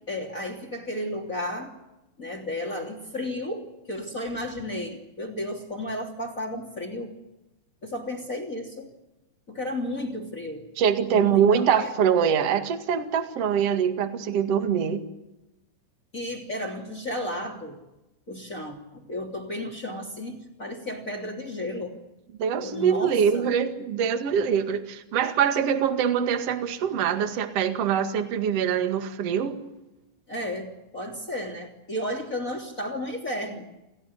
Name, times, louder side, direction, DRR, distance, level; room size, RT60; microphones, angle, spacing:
voice 1, 0.1-1.7 2.2-7.1 7.8-8.9 9.5-10.7 11.1-11.9 16.1-17.8 18.3-22.0 22.6-23.5 30.3-33.7, left 1 dB, 20° left, 2 dB, 2.9 m, -33 dB
voice 2, 10.8-15.0 22.4-29.6, right 8 dB, 45° right, 7 dB, 2.3 m, -24 dB
28.5 x 18.0 x 9.8 m, 0.97 s
omnidirectional pair, 5.0 m